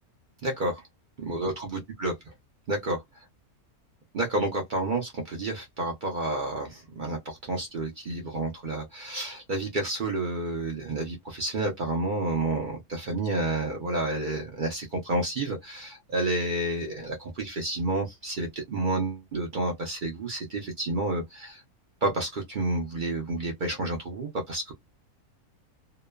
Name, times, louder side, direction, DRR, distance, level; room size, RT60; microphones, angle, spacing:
voice 1, 0.4-0.8 1.2-2.3 2.7-3.0 4.1-21.6 22.0-24.7, right 2 dB, 60° right, 0.5 m, -30 dB
2.9 x 2.0 x 2.2 m
omnidirectional pair, 1.6 m